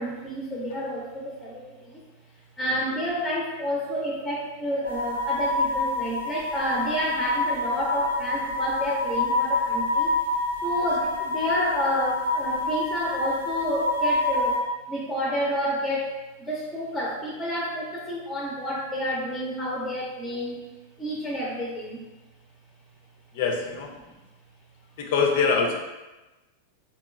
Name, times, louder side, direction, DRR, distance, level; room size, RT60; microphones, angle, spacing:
voice 1, 0.0-2.0 2.6-10.2 10.6-14.6 14.9-20.6 21.0-22.0, equal, 10° left, -4 dB, 0.7 m, -29 dB
sound 1, 4.8-14.6, left 2 dB, 75° right, 0.5 m, -27 dB
voice 2, 23.3-23.9 25.0-25.8, left 5 dB, 50° left, 3 dB, 0.5 m, -24 dB
3.6 x 2.9 x 2.3 m, 1.1 s
figure-of-eight pair, 90°, 0 cm